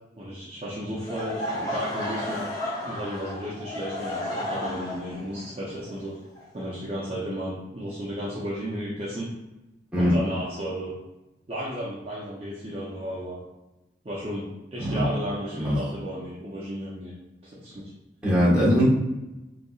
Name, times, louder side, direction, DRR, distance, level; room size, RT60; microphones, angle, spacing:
voice 1, 0.2-2.4 2.9-6.2 6.5-9.3 10.0-10.9 11.5-13.4 14.0-17.1 17.4-17.9, equal, 30° right, -7 dB, 0.5 m, -33 dB
Laughter / Crowd, 1.0-6.9, left 1 dB, 20° left, 0.6 m, -33 dB
voice 2, 18.2-18.8, equal, 5° right, -9 dB, 1.2 m, -21 dB
4.0 x 2.7 x 2.3 m, 0.99 s
head